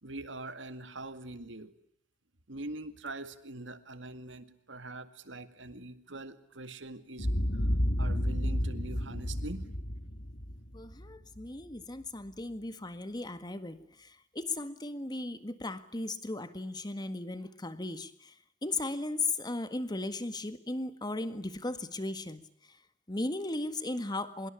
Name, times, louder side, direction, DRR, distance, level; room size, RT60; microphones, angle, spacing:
voice 1, 0.0-1.7 2.5-7.7 8.0-9.7, right 2 dB, 75° right, 11 dB, 2.1 m, -43 dB
Boom, 7.2-11.5, equal, 50° left, 1.9 m, -31 dB
voice 2, 10.7-13.8 14.4-18.1 18.6-22.4 23.1-24.5, left 2 dB, 20° left, 11 dB, 1.8 m, -36 dB
25.0 x 22.5 x 9.9 m, 0.71 s
head